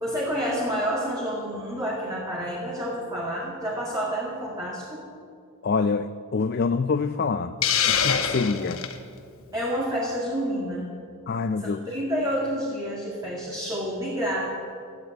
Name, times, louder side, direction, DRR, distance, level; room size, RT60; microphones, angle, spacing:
voice 1, 0.0-5.1 8.5-8.8 9.5-10.9 11.6-14.4, equal, 15° right, -6 dB, 2.2 m, -29 dB
voice 2, 5.6-7.6 7.9-8.8 11.3-11.9, left 4 dB, 45° left, 10 dB, 0.4 m, -26 dB
Hiss, 7.6-9.0, left 7 dB, 65° left, 1.1 m, -24 dB
13.0 x 10.5 x 8.7 m, 2.3 s
head